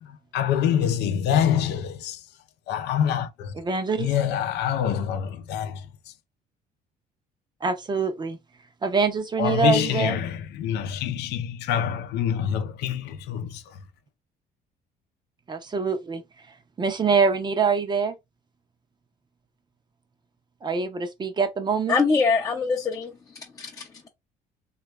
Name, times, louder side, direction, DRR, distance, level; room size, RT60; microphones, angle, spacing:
voice 1, 0.0-2.2 2.7-3.5 4.0-5.9 9.4-13.8, left 9 dB, 80° left, 0.6 m, -26 dB
voice 2, 3.6-4.1 7.6-8.4 8.8-10.2 15.5-16.2 16.8-18.1 20.6-22.0, right 5 dB, 25° right, 0.6 m, -24 dB
voice 3, 21.9-23.9, left 4 dB, 20° left, 0.6 m, -24 dB
3.2 x 2.4 x 3.1 m
cardioid pair, 110°, 17 cm